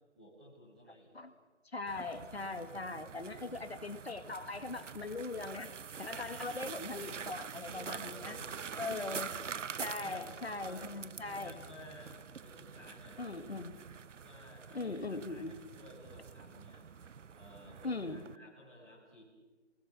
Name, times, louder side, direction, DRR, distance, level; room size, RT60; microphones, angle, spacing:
voice 1, 0.1-1.2 5.3-5.6 6.3-6.5 7.7-9.3 9.8-10.2 10.6-10.9 11.2-13.4 14.2-16.8 17.3-19.2, equal, 5° right, -9 dB, 1.9 m, -55 dB
voice 2, 1.7-5.7 6.0-8.4 8.8-9.3 9.8-11.5 13.2-13.7 14.7-15.5 17.8-18.2, left 3 dB, 60° left, 8 dB, 1.9 m, -40 dB
sound 1, 1.9-18.4, right 6 dB, 90° right, 0.7 m, -46 dB
28.5 x 20.5 x 7.1 m, 1.2 s
figure-of-eight pair, 180°, 36 cm